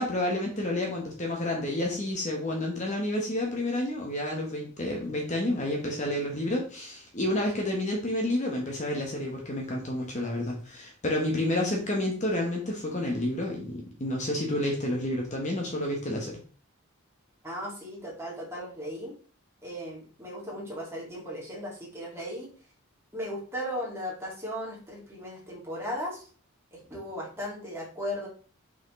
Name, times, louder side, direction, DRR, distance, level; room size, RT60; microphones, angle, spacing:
voice 1, 0.0-16.4, left 1 dB, 35° left, 0 dB, 1.1 m, -30 dB
voice 2, 17.4-19.2 19.6-22.5 23.1-26.3 26.7-28.3, equal, 10° right, -4 dB, 2.2 m, -36 dB
5.8 x 5.0 x 3.2 m, 0.39 s
head